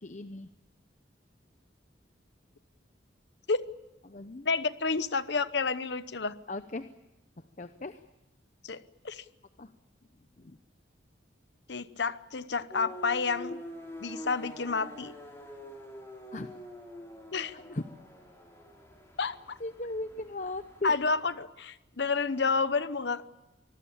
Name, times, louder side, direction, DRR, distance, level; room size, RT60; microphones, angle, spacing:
voice 1, 0.0-0.5 4.1-4.5 6.5-6.9 7.6-8.0 9.6-9.7 10.4-10.6 16.3-16.5 17.5-17.8 19.6-21.0, left 2 dB, 40° left, 10 dB, 0.8 m, -37 dB
voice 2, 4.4-6.3 8.6-9.2 11.7-13.6 14.0-15.1 17.3-17.5 19.2-19.6 20.8-23.2, left 4 dB, 65° left, 14 dB, 0.9 m, -30 dB
sound 1, 12.7-21.0, equal, 15° left, 5.5 m, -46 dB
25.5 x 20.0 x 8.6 m, 0.99 s
head